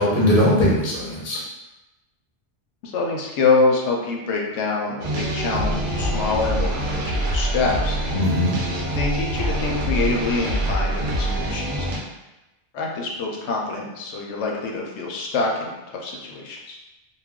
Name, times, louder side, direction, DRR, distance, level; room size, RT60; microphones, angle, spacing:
voice 1, 0.0-1.4 8.1-8.6, left 1 dB, 40° left, -5 dB, 0.7 m, -19 dB
voice 2, 2.8-8.0 8.9-12.0 12.7-16.8, left 3 dB, 75° left, -1 dB, 0.9 m, -25 dB
sound 1, 5.0-12.0, right 1 dB, 55° right, 0.7 m, -25 dB
2.3 x 2.2 x 3.5 m, 1.0 s
omnidirectional pair, 1.2 m